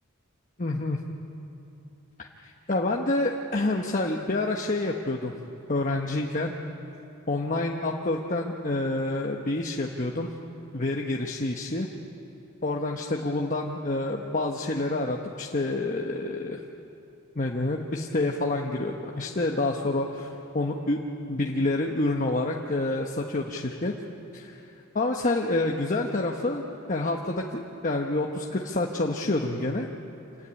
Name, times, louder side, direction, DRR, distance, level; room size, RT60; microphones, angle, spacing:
voice 1, 0.6-1.0 2.2-5.3 5.7-6.5 7.3-10.3 10.7-11.9 12.6-16.6 17.4-20.3 20.5-21.0 21.3-23.9 24.3-24.6 24.9-26.6 26.9-29.9, left 2 dB, 40° left, 0 dB, 1.1 m, -28 dB
27.0 x 16.0 x 9.8 m, 3.0 s
head